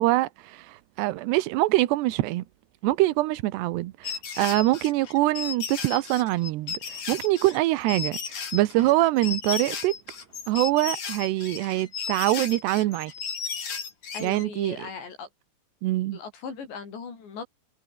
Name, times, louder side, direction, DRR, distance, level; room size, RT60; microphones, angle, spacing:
voice 1, 0.0-2.4 2.8-8.2 8.5-10.0 10.5-13.1 14.2-14.8 15.8-16.2, right 17 dB, 85° right, 3.1 m, -24 dB
sound 1, 4.0-14.5, left 6 dB, 45° left, 5.1 m, -34 dB
voice 2, 14.1-15.3 16.1-17.4, left 5 dB, 85° left, 8.1 m, -38 dB
omnidirectional pair, 4.9 m